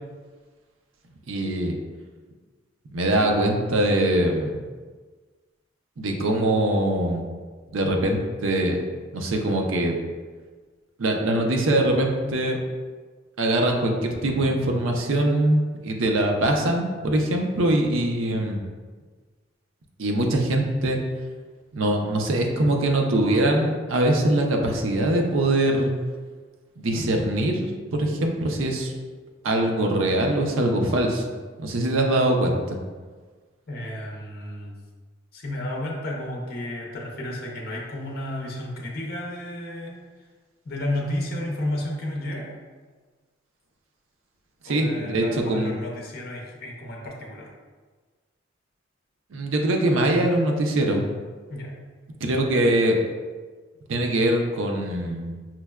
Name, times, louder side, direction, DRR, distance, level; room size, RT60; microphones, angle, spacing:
voice 1, 1.3-1.8 2.9-4.6 6.0-7.3 7.7-8.8 9.1-9.9 11.0-12.6 13.4-18.6 20.0-21.0 21.7-25.9 26.8-28.9 29.4-32.8 44.6-45.8 49.3-51.0 52.2-53.0 53.9-55.3, right 1 dB, 80° right, 2 dB, 0.5 m, -23 dB
voice 2, 33.7-34.7 35.3-40.0 40.6-42.5 44.6-47.5 51.5-51.7, left 1 dB, 50° left, -2 dB, 0.6 m, -32 dB
5.8 x 2.1 x 2.3 m, 1.4 s
head